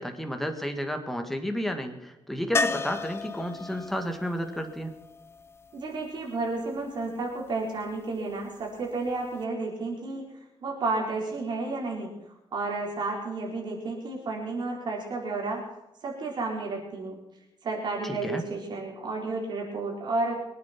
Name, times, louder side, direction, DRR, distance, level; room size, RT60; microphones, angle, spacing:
voice 1, 0.0-4.9 18.0-18.4, equal, ahead, 5 dB, 1.8 m, -32 dB
sound 1, 2.5-6.4 9.1-9.2 9.4-9.5, left 3 dB, 25° left, 0.7 m, -33 dB
voice 2, 5.7-10.2 10.6-12.1 12.5-15.6 16.0-17.2 17.6-20.4, right 3 dB, 50° right, -1 dB, 4.4 m, -31 dB
23.0 x 9.1 x 5.9 m, 0.98 s
cardioid pair, 140°, 10 cm